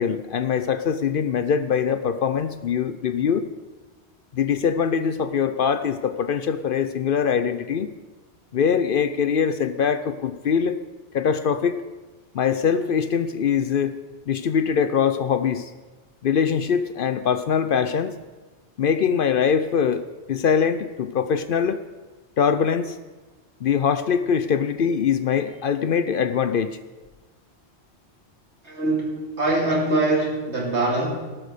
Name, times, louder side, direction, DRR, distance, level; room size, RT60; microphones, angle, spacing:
voice 1, 0.0-3.5 4.3-7.9 8.5-10.8 11.1-11.8 12.3-13.9 14.3-15.7 16.2-18.1 18.8-20.0 20.3-21.8 22.4-23.0 23.6-26.8, left 7 dB, 60° left, 12 dB, 0.7 m, -22 dB
voice 2, 28.6-31.1, right 2 dB, 75° right, -2 dB, 3.1 m, -23 dB
18.0 x 6.1 x 6.6 m, 1.3 s
omnidirectional pair, 1.1 m